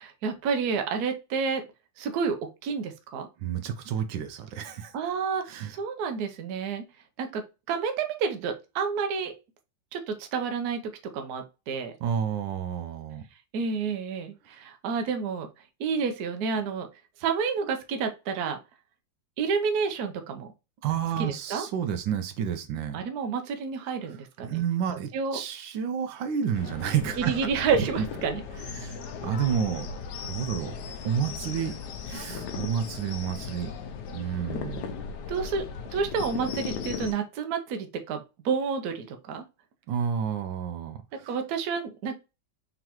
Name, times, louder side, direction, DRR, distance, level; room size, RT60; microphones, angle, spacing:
voice 1, 0.0-1.6 2.0-2.4 2.6-3.3 4.9-6.8 7.2-9.3 9.9-10.8 11.1-11.9 13.5-15.5 15.8-16.9 17.2-18.6 19.4-20.5 21.2-21.6 22.9-24.6 25.1-25.4 27.2-28.4 35.3-35.6 35.9-39.4 41.3-42.2, right 5 dB, 65° right, 1.1 m, -29 dB
voice 2, 3.4-4.9 5.5-5.7 12.0-13.2 20.8-23.0 24.1-24.2 24.4-27.5 28.0-28.1 28.6-29.9 30.2-30.8 31.0-31.8 32.1-33.7 34.1-34.9 39.9-41.3, right 8 dB, 80° right, 1.3 m, -30 dB
sound 1, 26.5-37.1, left 6 dB, 70° left, 1.1 m, -37 dB
4.0 x 3.7 x 2.9 m
omnidirectional pair, 2.0 m